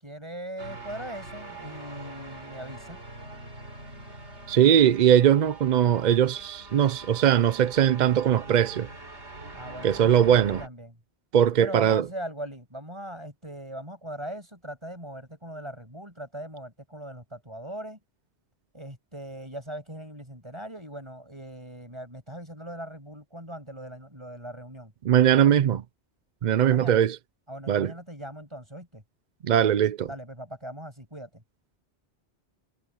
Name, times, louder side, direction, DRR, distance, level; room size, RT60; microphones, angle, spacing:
voice 1, 0.0-3.0 9.5-11.0 11.6-18.0 18.7-24.9 25.4-25.6 26.7-27.0 27.5-29.0 30.0-31.4, right 1 dB, 25° right, 8.1 m, -40 dB
sound 1, 0.6-10.7, right 2 dB, 75° right, 4.2 m, -43 dB
voice 2, 4.5-8.9 9.8-10.6 11.3-12.0 25.0-25.8 26.4-27.2 27.7-27.9 29.4-30.1, right 10 dB, 55° right, 0.5 m, -20 dB
omnidirectional pair, 1.2 m